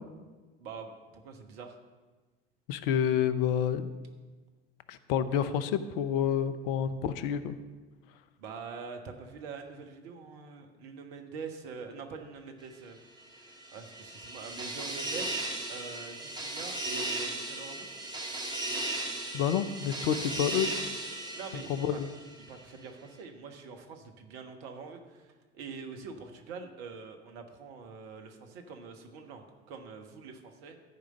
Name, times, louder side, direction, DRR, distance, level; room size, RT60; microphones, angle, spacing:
voice 1, 0.6-1.8 8.4-13.0 13.3-18.0 21.3-22.0 22.5-30.8, right 5 dB, 60° right, 5 dB, 1.4 m, -44 dB
voice 2, 2.7-3.9 4.9-7.6 19.3-20.7 21.7-22.1, left 8 dB, 55° left, 12 dB, 0.7 m, -29 dB
sound 1, 13.3-22.5, right 2 dB, 10° right, 2.4 m, -36 dB
14.0 x 5.0 x 6.5 m, 1.3 s
figure-of-eight pair, 70°, 34 cm